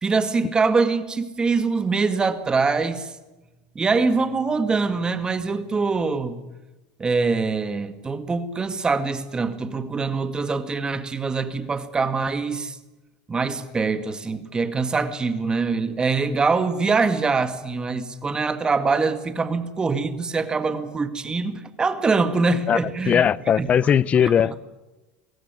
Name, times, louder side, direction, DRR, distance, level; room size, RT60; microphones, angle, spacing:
voice 1, 0.0-3.2 3.8-6.4 7.0-12.8 13.3-23.3 23.6-23.7 24.1-24.5, right 4 dB, 20° right, 2.0 m, -24 dB
voice 2, 23.1-24.6, left 8 dB, 30° left, 0.7 m, -19 dB
23.0 x 17.0 x 9.7 m
supercardioid pair, 120°, 4 cm